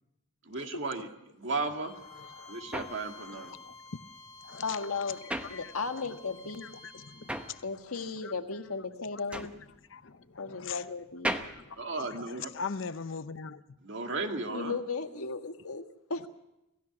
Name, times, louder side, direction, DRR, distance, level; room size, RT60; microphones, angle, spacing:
voice 1, 0.5-1.1 1.4-1.9 2.5-3.6 11.8-12.5 13.8-14.8, right 3 dB, 55° right, 2.0 m, -35 dB
Bowed string instrument, 1.8-7.6, left 3 dB, 30° left, 3.9 m, -51 dB
sound 1, 2.0-6.3 6.5-12.8, right 1 dB, 5° right, 1.0 m, -39 dB
voice 2, 2.2-2.6 3.2-3.7 4.4-5.7 6.6-7.6 8.2-8.3 9.0-9.4 9.9-10.8 11.5-13.6, left 6 dB, 55° left, 0.7 m, -42 dB
voice 3, 4.6-5.2 5.5-6.6 7.6-9.5 10.4-11.3 14.5-15.8 16.1-16.3, left 4 dB, 85° left, 1.6 m, -35 dB
27.5 x 16.0 x 6.0 m
head